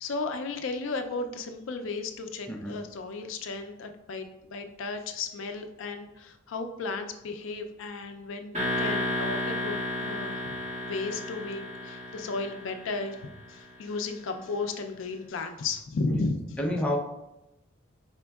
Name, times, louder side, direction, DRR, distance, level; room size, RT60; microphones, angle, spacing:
voice 1, 0.0-10.5 10.8-16.6, left 3 dB, 70° left, 6 dB, 0.4 m, -34 dB
voice 2, 2.5-2.8 16.1-16.2 16.6-17.0, left 1 dB, 5° left, -1 dB, 0.5 m, -29 dB
sound 1, 8.5-13.5, left 1 dB, 35° right, 1.5 m, -33 dB
5.1 x 4.3 x 2.3 m, 0.91 s
head